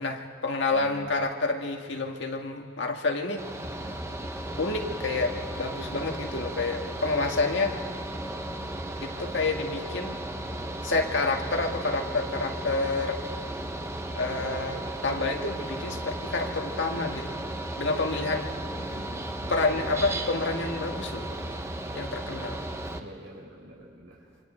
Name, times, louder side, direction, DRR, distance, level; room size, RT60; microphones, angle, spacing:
voice 1, 0.0-3.4 4.6-7.8 9.0-10.2 10.8-13.2 14.1-17.4 17.8-18.5 19.5-21.3 21.9-22.6, left 3 dB, 60° left, 2 dB, 1.9 m, -29 dB
voice 2, 0.7-1.1 18.8-19.5 19.8-20.0 23.0-24.4, equal, 90° right, -3 dB, 4.5 m, -47 dB
Mechanical fan, 3.4-23.0, right 1 dB, 15° right, 0.9 m, -35 dB
26.5 x 25.5 x 4.5 m, 2.1 s
head